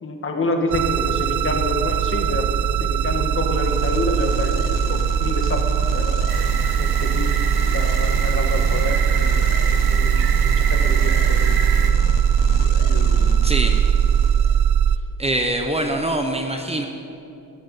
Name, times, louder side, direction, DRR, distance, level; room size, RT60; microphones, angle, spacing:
voice 1, 0.0-2.5 2.8-4.6 4.9-6.2 6.8-7.3 7.7-11.6 12.8-13.5, left 2 dB, 35° left, 3 dB, 1.9 m, -28 dB
sound 1, 0.7-15.0, right 9 dB, 55° right, 0.6 m, -20 dB
sound 2, 3.3-14.7, left 8 dB, 65° left, 0.8 m, -33 dB
sound 3, 6.3-11.9, right 7 dB, 80° right, 1.2 m, -29 dB
voice 2, 15.2-16.9, right 1 dB, 20° right, 4 dB, 0.9 m, -23 dB
17.0 x 13.5 x 5.5 m, 2.7 s
cardioid pair, 140°, 35 cm